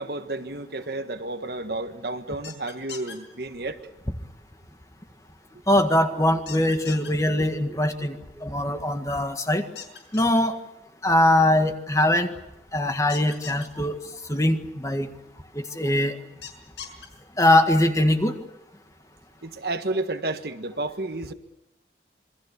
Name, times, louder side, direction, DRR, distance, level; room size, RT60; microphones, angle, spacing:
voice 1, 0.0-3.8 19.4-21.3, right 2 dB, 60° right, 8 dB, 1.6 m, -31 dB
sound 1, 2.4-3.2 6.5-7.1 9.8-10.4 13.1-13.7 16.4-17.1, left 7 dB, 85° left, 5.6 m, -39 dB
voice 2, 5.7-8.1 8.4-9.6 10.1-10.5 11.0-12.3 12.7-14.0 14.3-15.1 15.7-16.1 17.4-18.3, left 1 dB, 20° left, 6 dB, 1.7 m, -21 dB
27.0 x 23.0 x 7.0 m, 0.88 s
head